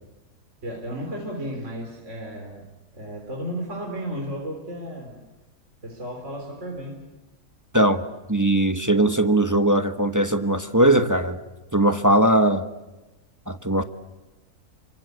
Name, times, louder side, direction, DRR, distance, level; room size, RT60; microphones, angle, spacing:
voice 1, 0.6-2.7 2.9-5.1 5.8-7.0, equal, 50° right, 4.1 m, -33 dB
voice 2, 8.3-11.4 11.7-12.7 13.5-13.8, right 1 dB, 15° right, 1.1 m, -20 dB
29.5 x 25.0 x 8.2 m
omnidirectional pair, 1.6 m